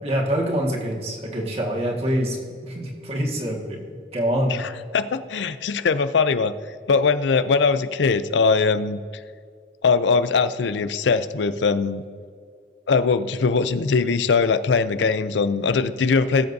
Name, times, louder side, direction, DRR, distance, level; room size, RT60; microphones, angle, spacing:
voice 1, 0.0-4.6, equal, 35° right, -1 dB, 1.7 m, -25 dB
voice 2, 4.5-6.5 6.9-9.0 9.8-12.0 12.9-16.5, left 4 dB, 85° left, 13 dB, 0.5 m, -21 dB
18.0 x 7.7 x 2.7 m, 2.1 s
head